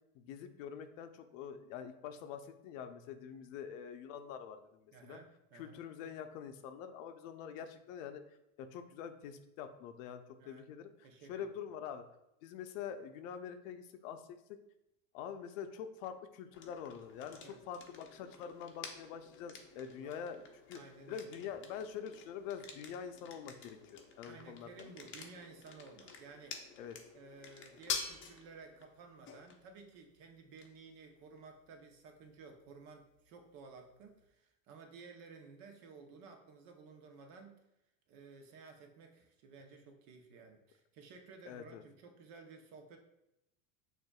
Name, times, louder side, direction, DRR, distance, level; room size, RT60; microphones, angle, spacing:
voice 1, 0.1-5.2 5.5-8.2 8.6-12.0 12.4-14.4 15.1-17.4 17.7-20.4 20.7-20.8 21.1-24.9 26.8-27.0 41.5-41.8, left 8 dB, 75° left, 9 dB, 0.6 m, -45 dB
voice 2, 4.9-5.8 10.4-10.7 11.0-11.5 17.4-17.6 20.0-20.2 20.7-21.3 24.2-26.6 27.1-37.7 38.1-43.0, right 4 dB, 60° right, 4 dB, 0.8 m, -55 dB
sound 1, 16.5-34.3, left 6 dB, 30° left, 0.6 m, -49 dB
6.4 x 2.5 x 2.3 m, 0.85 s
supercardioid pair, 115°, 39 cm